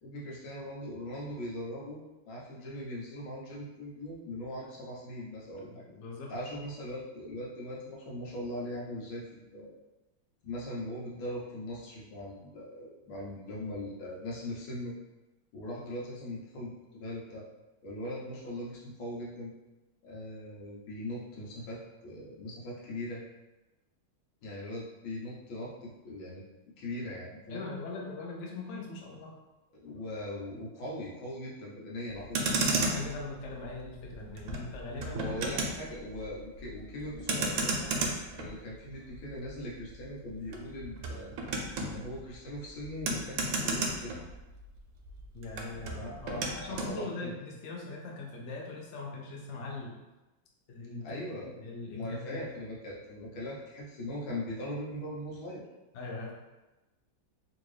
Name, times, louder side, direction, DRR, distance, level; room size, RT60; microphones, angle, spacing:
voice 1, 0.0-5.8 6.3-9.8 10.4-14.9 15.5-17.5 17.8-19.5 20.0-23.2 24.4-26.4 26.8-27.7 29.7-32.4 35.1-38.1 38.4-41.3 41.7-44.2 45.7-47.3 51.0-51.5 51.9-55.6, left 1 dB, 85° left, -4 dB, 1.7 m, -40 dB
voice 2, 5.6-6.3 27.5-29.3 32.8-35.3 45.3-50.0 50.7-51.2 51.6-52.4 55.9-56.3, left 3 dB, 65° left, -2 dB, 0.7 m, -41 dB
Motor vehicle (road), 32.1-44.8 45.0-46.9, right 2 dB, 80° right, 1.3 m, -34 dB
3.7 x 2.7 x 3.2 m, 1.1 s
omnidirectional pair, 2.1 m